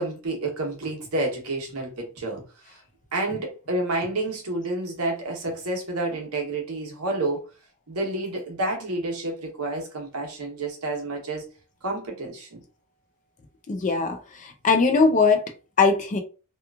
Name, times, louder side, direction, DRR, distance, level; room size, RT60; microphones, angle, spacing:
voice 1, 0.0-2.4 2.7-2.8 3.1-7.5 7.9-11.4 11.8-12.6, right 2 dB, 70° right, 1.0 m, -29 dB
voice 2, 13.7-15.5 15.8-16.2, left 4 dB, 35° left, 0.4 m, -21 dB
2.9 x 2.3 x 2.3 m
head